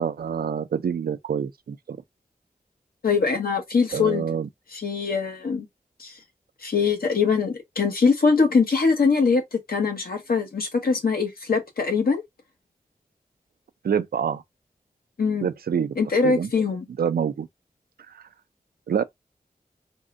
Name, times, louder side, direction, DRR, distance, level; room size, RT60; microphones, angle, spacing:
voice 1, 0.0-2.0 3.9-4.5 13.8-14.4 15.4-16.0 16.2-16.5 17.0-17.5 18.9-19.0, right 7 dB, 85° right, 0.4 m, -26 dB
voice 2, 3.0-4.2 4.7-5.7 6.0-6.1 6.6-9.4 9.7-12.2 15.2-15.5 16.0-16.8, left 5 dB, 80° left, 1.0 m, -22 dB
3.6 x 2.1 x 2.5 m
wide cardioid pair, 55°, 15 cm